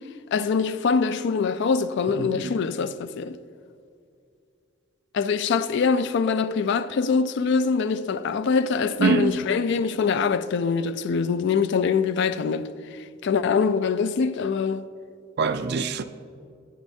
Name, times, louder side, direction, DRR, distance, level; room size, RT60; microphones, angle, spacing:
voice 1, 0.3-3.4 5.1-14.9, left 5 dB, 60° left, 0.3 m, -24 dB
voice 2, 2.2-2.5 9.0-9.4 15.4-16.0, right 4 dB, 55° right, 0.4 m, -24 dB
11.5 x 9.1 x 2.7 m
head